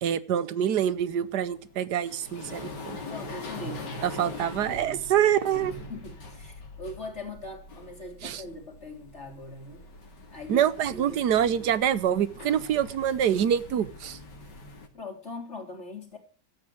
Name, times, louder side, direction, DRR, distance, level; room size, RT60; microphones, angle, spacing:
voice 1, 0.0-3.0 4.0-5.7 8.2-8.4 10.5-14.2, right 9 dB, 70° right, 15 dB, 1.5 m, -26 dB
sound 1, 0.9-14.9, left 2 dB, 70° left, 2.9 m, -43 dB
voice 2, 3.1-4.0 4.7-5.1 5.9-9.8 10.3-11.2 14.9-16.2, left 2 dB, 40° left, 2 dB, 4.0 m, -41 dB
13.5 x 8.5 x 8.6 m, 0.41 s
omnidirectional pair, 1.9 m